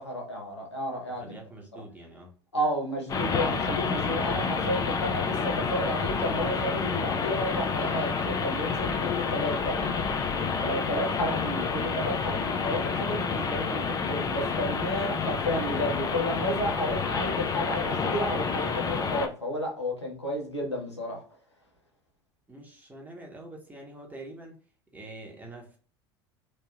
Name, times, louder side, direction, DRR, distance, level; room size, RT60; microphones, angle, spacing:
voice 1, 0.0-1.4 1.7-1.8 2.5-10.1 10.6-21.2, equal, 90° left, 0.9 m, -32 dB
voice 2, 1.2-2.3 10.8-11.0 22.5-24.6 24.9-25.8, right 2 dB, 10° right, 1.0 m, -45 dB
sound 1, 3.1-19.3, left 5 dB, 25° left, 0.5 m, -29 dB
3.1 x 2.7 x 2.3 m
figure-of-eight pair, 75°, 14 cm